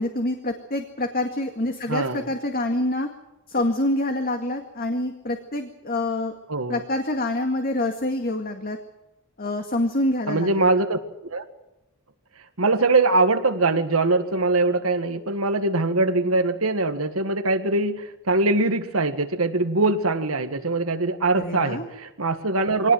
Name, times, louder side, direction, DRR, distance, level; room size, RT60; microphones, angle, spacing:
voice 1, 0.0-3.1 3.5-6.3 6.7-8.8 9.4-10.7 21.4-21.9, left 1 dB, 45° left, 5 dB, 2.0 m, -26 dB
voice 2, 1.9-2.3 6.5-6.8 10.3-11.0 11.3-11.4 12.6-22.9, right 2 dB, 85° right, 7 dB, 1.9 m, -22 dB
24.0 x 18.5 x 7.6 m, 0.92 s
head